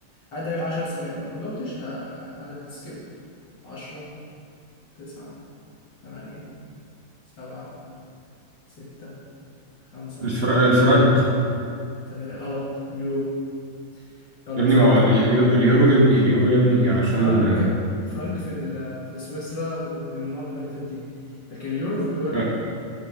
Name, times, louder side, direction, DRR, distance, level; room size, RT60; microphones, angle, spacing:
voice 1, 0.3-3.0 3.6-4.0 5.0-5.3 6.0-6.4 7.4-7.7 8.8-9.1 9.9-10.3 12.1-12.6 12.9-13.3 13.9-14.0 14.5-15.3 17.2-17.7 18.0-21.0 21.5-22.4, left 2 dB, 70° left, -8 dB, 2.4 m, -31 dB
voice 2, 10.2-11.2 14.6-17.7 22.3-22.4, right 1 dB, 35° right, -6 dB, 1.7 m, -17 dB
9.2 x 5.8 x 5.9 m, 2.3 s
omnidirectional pair, 2.0 m